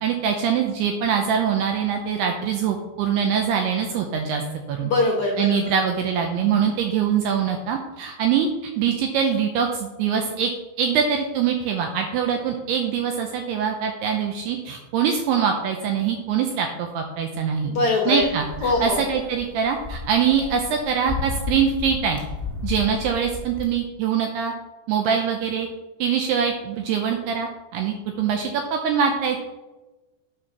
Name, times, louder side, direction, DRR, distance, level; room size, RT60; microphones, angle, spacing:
voice 1, 0.0-4.4 4.7-4.9 5.4-8.5 8.8-10.5 10.8-17.7 18.1-22.2 22.6-24.5 24.9-25.7 26.0-29.4, right 7 dB, 80° right, 3 dB, 2.6 m, -23 dB
voice 2, 4.8-5.6 17.6-18.3 18.6-19.0, left 2 dB, 80° left, -1 dB, 1.6 m, -22 dB
sound 1, 18.2-23.7, left 4 dB, ahead, 1.2 m, -33 dB
10.0 x 4.3 x 5.9 m, 1.1 s
omnidirectional pair, 5.1 m